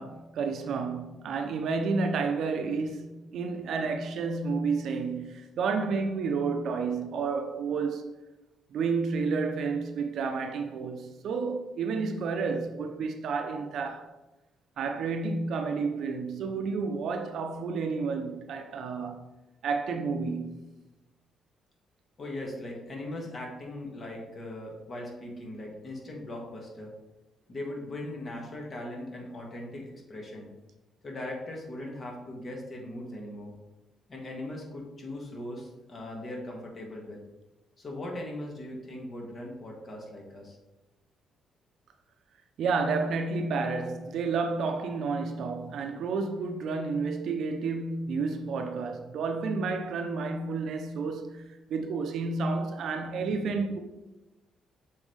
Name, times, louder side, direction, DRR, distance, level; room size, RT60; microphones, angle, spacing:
voice 1, 0.0-8.1 8.7-14.1 14.8-19.3 19.6-20.6 42.6-53.8, right 4 dB, 70° right, 0.6 m, -30 dB
voice 2, 22.2-26.9 27.5-30.5 31.0-33.5 34.1-37.2 37.8-40.6, left 1 dB, 40° left, 1.9 m, -39 dB
7.2 x 4.1 x 3.4 m
cardioid pair, 90°, 0 cm